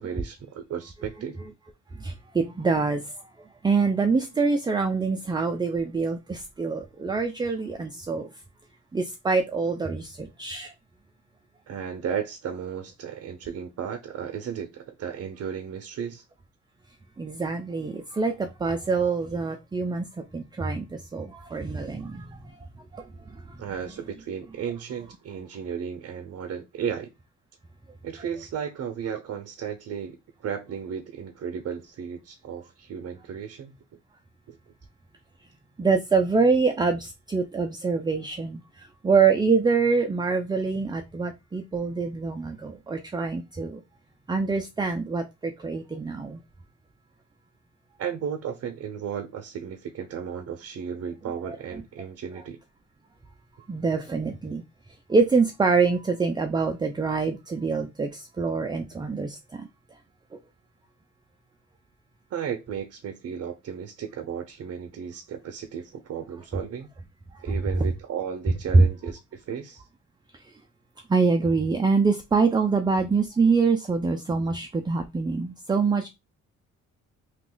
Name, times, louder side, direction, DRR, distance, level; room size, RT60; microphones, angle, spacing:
voice 1, 0.0-1.4 11.7-16.2 23.6-27.1 28.0-33.8 34.5-34.6 48.0-52.6 62.3-66.9 67.4-69.9, right 7 dB, 55° right, 0.7 m, -34 dB
voice 2, 2.0-3.2 3.6-8.3 8.9-10.7 17.2-20.1 20.3-22.4 22.9-23.0 23.5-23.6 35.8-43.8 44.3-46.4 51.5-51.6 53.7-54.6 55.1-59.7 68.7-68.9 71.1-76.1, right 4 dB, 15° right, 0.4 m, -25 dB
2.9 x 2.4 x 3.8 m
cardioid pair, 90°, 30 cm